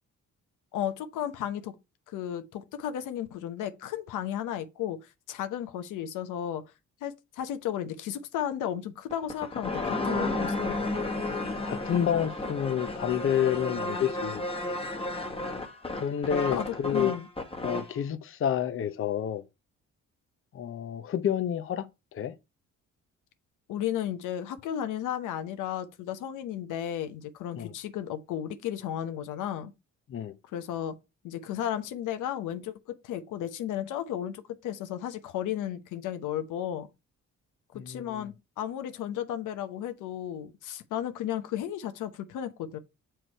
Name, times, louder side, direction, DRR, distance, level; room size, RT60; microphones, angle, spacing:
voice 1, 0.7-1.7 2.1-6.6 7.0-10.9 16.5-17.3 23.7-29.7 30.5-30.9 31.2-32.7 33.0-36.9 37.9-42.8, left 10 dB, 85° left, 0.9 m, -34 dB
sound 1, 9.1-18.0, left 2 dB, 20° left, 1.2 m, -32 dB
voice 2, 11.7-14.4 15.9-17.1 17.6-19.4 20.5-21.9 22.1-22.3 27.6-27.7 30.1-30.3 37.7-38.3, left 9 dB, 45° left, 0.7 m, -29 dB
6.4 x 4.6 x 4.4 m
cardioid pair, 90°, 30 cm